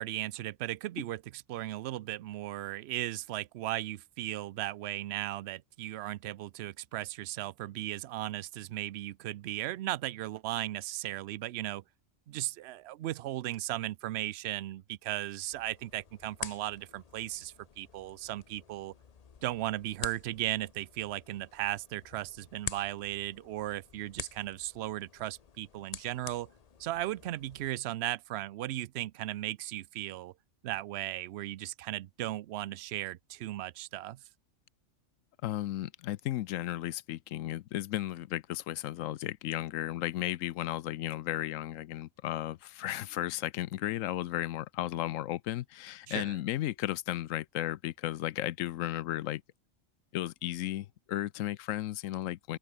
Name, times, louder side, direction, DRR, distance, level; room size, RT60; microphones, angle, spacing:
voice 1, 0.0-11.8 12.3-18.9 19.4-26.5 26.8-30.3 30.6-34.2 46.1-46.4, right 14 dB, 65° right, 0.7 m, -36 dB
sound 1, 15.5-27.7, left 6 dB, 40° left, 0.6 m, -47 dB
voice 2, 35.4-49.4 50.1-52.6, left 14 dB, 80° left, 1.0 m, -34 dB
open air
omnidirectional pair, 1.4 m